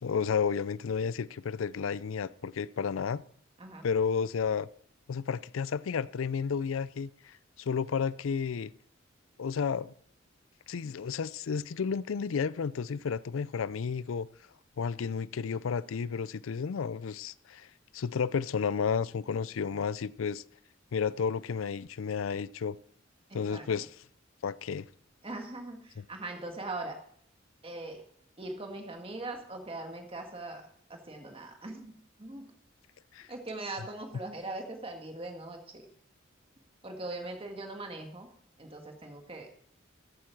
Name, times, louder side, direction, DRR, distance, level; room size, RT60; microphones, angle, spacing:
voice 1, 0.0-3.2 3.8-4.7 5.1-8.7 9.4-9.9 10.7-14.3 14.8-17.7 17.9-20.4 20.9-22.8 23.3-23.9 24.4-24.9 33.1-33.3, left 6 dB, 90° left, 0.4 m, -32 dB
voice 2, 23.3-23.7 25.2-27.0 27.6-28.0 28.4-30.6 30.9-32.5 33.3-35.9 36.8-38.3 38.6-39.5, right 2 dB, 30° right, 1.9 m, -40 dB
14.0 x 8.4 x 4.7 m
head